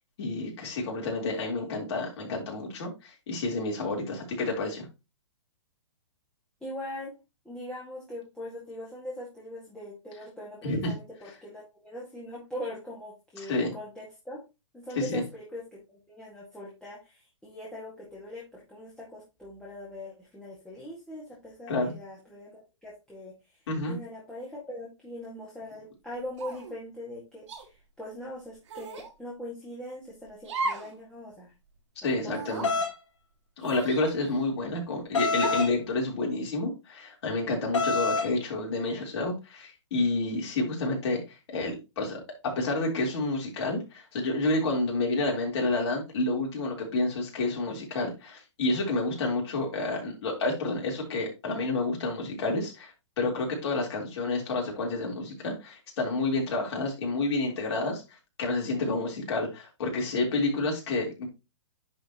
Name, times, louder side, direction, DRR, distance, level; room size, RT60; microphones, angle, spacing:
voice 1, 0.2-4.9 10.6-10.9 13.4-13.7 15.0-15.2 21.7-21.9 23.7-24.0 32.0-32.7 33.6-58.0 58.4-61.3, left 2 dB, 55° left, 0 dB, 3.7 m, -29 dB
voice 2, 6.6-7.1 7.5-14.4 14.7-23.3 23.9-31.5 32.2-32.8, left 1 dB, 5° left, -6 dB, 2.0 m, -41 dB
sound 1, 26.4-26.8 27.5-27.6 28.7-29.1 30.4-30.9 31.3-31.4 32.2-32.7 33.6-34.5 35.4-35.8, right 3 dB, 70° right, 2.3 m, -36 dB
sound 2, 32.6-32.9 35.1-35.7 37.7-38.3, left 3 dB, 80° left, 2.3 m, -26 dB
10.5 x 4.7 x 3.0 m, 0.26 s
hypercardioid pair, 140°, 16 cm